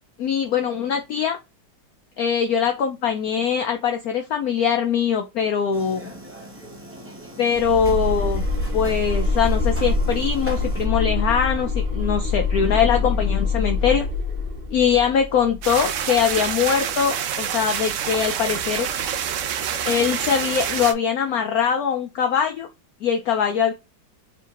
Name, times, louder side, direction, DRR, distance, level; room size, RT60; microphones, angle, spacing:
voice 1, 0.2-1.4 2.2-6.1 7.4-8.4 8.7-14.1 14.7-18.9 19.8-22.7 23.0-23.7, left 7 dB, 70° left, 0.9 m, -22 dB
sound 1, 5.7-10.9, equal, 10° right, 0.6 m, -41 dB
sound 2, 7.5-16.4, left 3 dB, 40° right, 0.8 m, -25 dB
sound 3, 15.6-20.9, right 9 dB, 80° right, 0.7 m, -27 dB
4.4 x 3.6 x 2.5 m
omnidirectional pair, 2.0 m